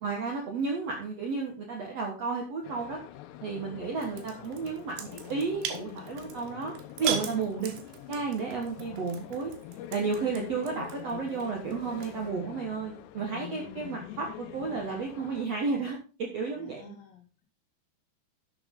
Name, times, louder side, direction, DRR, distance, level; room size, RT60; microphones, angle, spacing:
voice 1, 0.0-3.0 3.4-6.7 7.0-7.7 8.1-9.5 9.9-17.0, right 4 dB, 60° right, 0 dB, 1.7 m, -32 dB
sound 1, 2.6-15.5, left 13 dB, 80° left, 2.8 m, -45 dB
sound 2, 4.0-12.3, right 9 dB, 85° right, 3.6 m, -40 dB
voice 2, 16.5-17.4, left 6 dB, 60° left, 3 dB, 2.9 m, -54 dB
11.5 x 7.4 x 3.8 m, 0.35 s
omnidirectional pair, 5.0 m